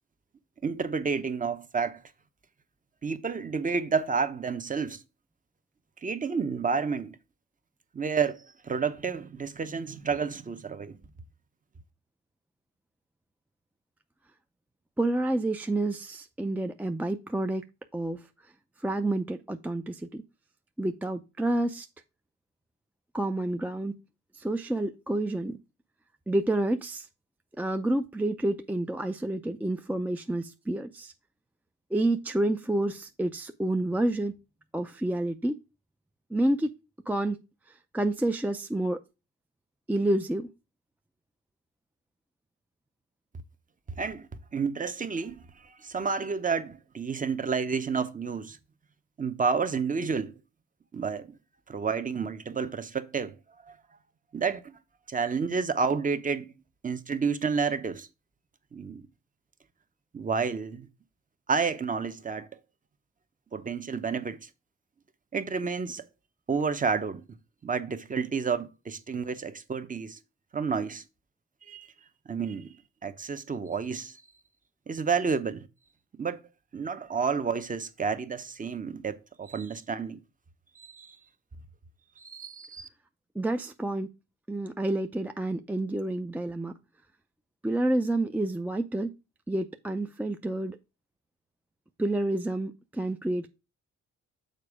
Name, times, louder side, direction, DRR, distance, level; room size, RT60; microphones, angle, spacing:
voice 1, 0.6-2.0 3.0-5.0 6.0-7.2 7.9-11.0 44.0-45.4 45.8-48.6 49.2-50.3 50.9-51.4 51.7-53.3 53.7-53.8 54.3-54.7 55.1-56.5 56.8-58.1 58.7-59.0 60.1-60.9 61.5-62.5 63.5-64.5 65.3-66.0 66.5-67.2 67.6-70.2 70.5-71.0 71.7-71.9 72.3-72.7 73.0-74.2 74.9-75.7 76.2-76.4 76.7-80.2 80.8-81.2 82.2-82.9, right 5 dB, 25° right, 0.8 m, -30 dB
voice 2, 15.0-17.6 17.9-18.2 18.8-20.2 20.8-21.9 23.1-24.0 24.3-25.6 26.3-27.1 27.6-31.1 31.9-34.4 34.7-35.5 36.3-36.7 37.1-37.4 37.7-39.0 39.9-40.5 83.4-84.1 84.5-86.7 87.6-89.1 89.5-90.8 92.0-93.5, right 1 dB, 5° right, 0.4 m, -29 dB
6.7 x 4.4 x 4.9 m
cardioid pair, 90°, 30 cm